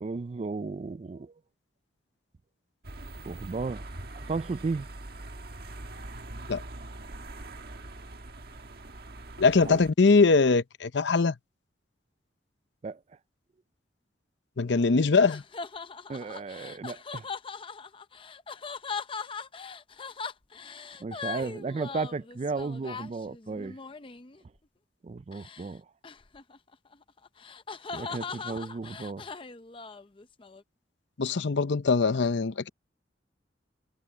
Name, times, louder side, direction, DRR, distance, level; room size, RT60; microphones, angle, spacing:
voice 1, 0.0-1.3 3.3-3.8 4.1-4.9 9.6-9.8 12.8-13.0 16.1-17.2 21.0-23.8 25.0-25.8 27.9-29.3, right 4 dB, 35° right, 0.3 m, -34 dB
sound 1, 2.8-9.9, right 2 dB, 55° right, 1.6 m, -43 dB
voice 2, 9.4-11.3 14.6-15.4 31.2-32.7, left 4 dB, 80° left, 0.7 m, -22 dB
sound 2, 14.6-24.4 25.3-25.7 26.0-30.6, left 5 dB, 30° left, 0.6 m, -40 dB
head